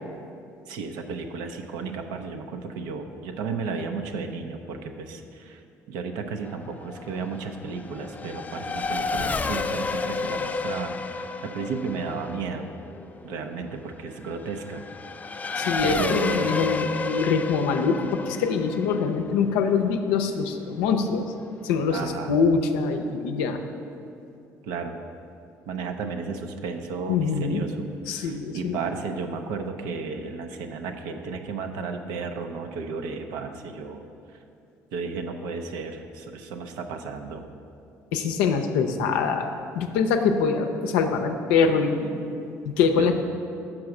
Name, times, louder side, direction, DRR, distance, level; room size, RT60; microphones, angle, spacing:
voice 1, 0.7-5.6 5.9-12.7 13.2-14.8 15.8-16.6 21.9-22.3 24.6-24.9 25.7-34.0 34.9-37.4 43.0-43.1, right 4 dB, 80° right, 5 dB, 0.5 m, -33 dB
Race car auto racing / Accelerating revving vroom, 6.4-20.5, left 4 dB, 20° left, 0.3 m, -31 dB
voice 2, 15.6-21.3 21.6-23.6 27.1-27.6 28.1-28.8 38.1-39.5 39.7-42.3 42.7-43.1, left 5 dB, 85° left, 5 dB, 0.5 m, -24 dB
6.0 x 4.8 x 6.4 m, 2.6 s
supercardioid pair, 70°, 7 cm